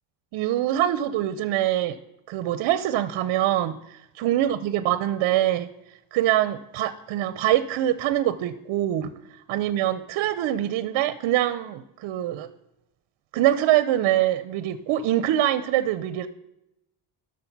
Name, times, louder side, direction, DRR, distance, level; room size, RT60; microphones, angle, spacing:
voice 1, 0.3-2.0 2.3-5.7 6.1-9.1 9.5-12.5 13.3-16.3, right 13 dB, 65° right, 14 dB, 0.7 m, -24 dB
12.0 x 6.4 x 5.9 m, 0.86 s
cardioid pair, 165°, 47 cm